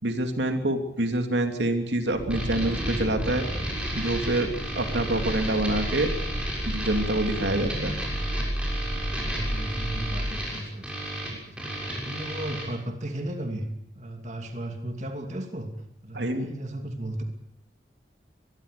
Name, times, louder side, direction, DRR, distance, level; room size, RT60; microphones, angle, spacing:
voice 1, 0.0-3.4 3.9-6.1 6.6-7.9 16.1-16.5, right 1 dB, 80° right, 5 dB, 2.9 m, -26 dB
sound 1, 2.1-10.4, equal, 65° right, 5.2 m, -32 dB
sound 2, 2.3-12.7, right 1 dB, 5° right, 6.6 m, -34 dB
voice 2, 7.2-8.0 8.9-11.7 12.0-13.7 13.9-15.7 16.0-17.2, right 1 dB, 40° right, 4 dB, 2.7 m, -35 dB
23.5 x 22.0 x 6.8 m, 0.74 s
head